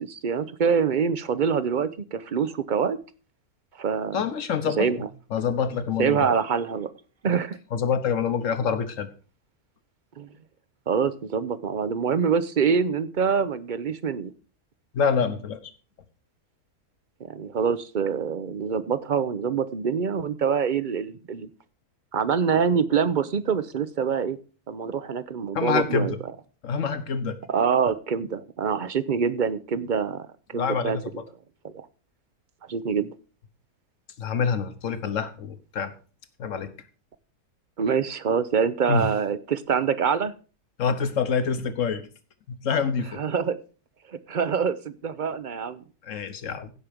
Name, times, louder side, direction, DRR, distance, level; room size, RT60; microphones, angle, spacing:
voice 1, 0.0-3.0 3.8-4.2 4.8-5.1 6.0-6.9 7.2-7.6 10.2-10.3 10.9-14.3 17.2-21.5 22.1-24.4 24.7-26.1 27.5-31.0 31.6-31.9 32.7-33.1 37.8-40.3 43.2-43.6 44.1-45.8, right 6 dB, 50° right, 14 dB, 0.6 m, -25 dB
voice 2, 4.1-4.9 5.3-6.3 7.7-9.1 14.9-15.6 25.5-26.2 26.6-27.4 30.5-31.1 34.2-35.9 36.4-36.7 38.9-39.1 40.8-42.1 42.5-43.2 46.0-46.7, left 6 dB, 60° left, 11 dB, 1.5 m, -26 dB
16.0 x 6.0 x 5.1 m, 0.37 s
omnidirectional pair, 1.6 m